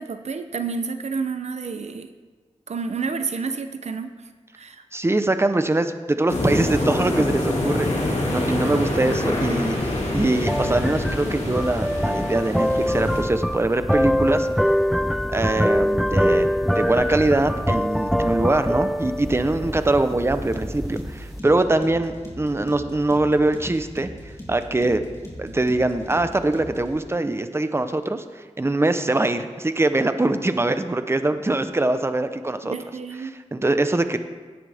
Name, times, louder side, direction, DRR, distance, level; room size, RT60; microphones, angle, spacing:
voice 1, 0.0-2.1 2.7-4.1 4.5-4.8 32.6-33.3, right 5 dB, 75° right, 9 dB, 0.7 m, -29 dB
voice 2, 4.9-14.5 15.3-16.5 16.7-24.1 24.5-25.0 25.4-28.2 28.6-32.7 33.3-34.2, right 2 dB, 20° right, 9 dB, 0.8 m, -23 dB
sound 1, 6.3-13.2, left 1 dB, 75° left, 2.3 m, -26 dB
sound 2, 9.8-21.4, equal, ahead, 0.3 m, -24 dB
sound 3, 20.1-27.0, equal, 25° left, 3.2 m, -40 dB
16.5 x 10.0 x 3.5 m, 1.4 s
wide cardioid pair, 65°, 11 cm